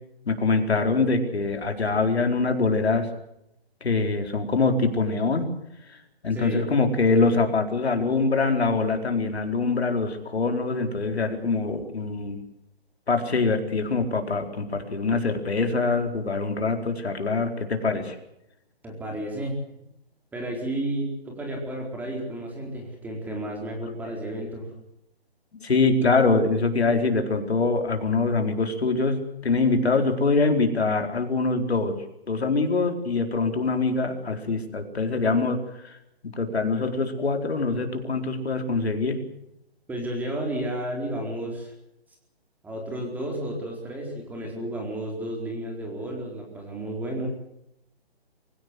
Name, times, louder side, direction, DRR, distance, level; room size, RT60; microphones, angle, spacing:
voice 1, 0.3-3.1 3.8-5.5 6.2-12.4 13.1-18.2 25.6-32.0 32.3-35.6 35.8-35.9 36.2-39.2, left 3 dB, 80° left, 4 dB, 4.6 m, -24 dB
voice 2, 18.8-19.5 20.3-24.7 39.9-41.7 42.6-47.4, right 1 dB, 5° right, 0 dB, 4.3 m, -32 dB
24.0 x 16.5 x 8.1 m, 0.81 s
hypercardioid pair, 155°, 32 cm